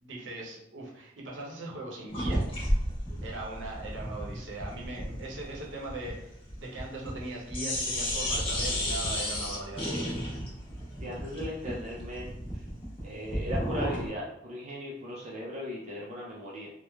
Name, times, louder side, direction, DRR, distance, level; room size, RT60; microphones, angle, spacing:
voice 1, 0.0-2.4 3.2-9.8, right 2 dB, 70° right, -3 dB, 0.7 m, -40 dB
sound 1, 2.1-7.3 7.5-14.1, equal, 30° left, 0.9 m, -33 dB
voice 2, 11.0-12.3 13.0-16.7, equal, 35° right, -5 dB, 0.4 m, -37 dB
3.0 x 2.0 x 2.3 m, 0.76 s
head